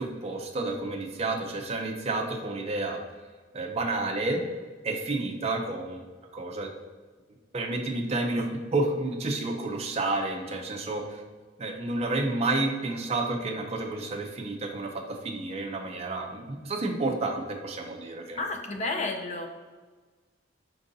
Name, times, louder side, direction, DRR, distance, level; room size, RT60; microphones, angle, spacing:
voice 1, 0.0-3.0 3.5-4.4 4.8-6.0 6.3-6.7 7.5-11.2 11.6-18.4, right 2 dB, 30° right, 2 dB, 0.4 m, -30 dB
voice 2, 18.3-19.5, left 3 dB, 35° left, 4 dB, 0.4 m, -31 dB
4.5 x 3.9 x 2.6 m, 1.4 s
head